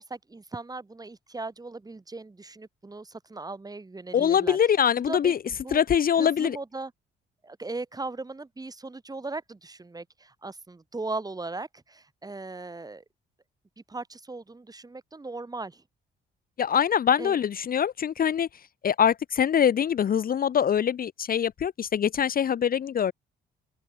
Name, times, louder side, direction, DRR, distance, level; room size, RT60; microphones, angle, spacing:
voice 1, 0.0-4.6 5.1-5.8 6.2-6.9 7.4-13.0 13.9-15.8 17.2-17.3, right 3 dB, 20° right, 2.0 m, -38 dB
voice 2, 4.1-5.4 5.7-6.6 16.6-18.5 18.8-23.1, left 8 dB, 50° left, 0.8 m, -23 dB
open air
cardioid pair, 90°, 20 cm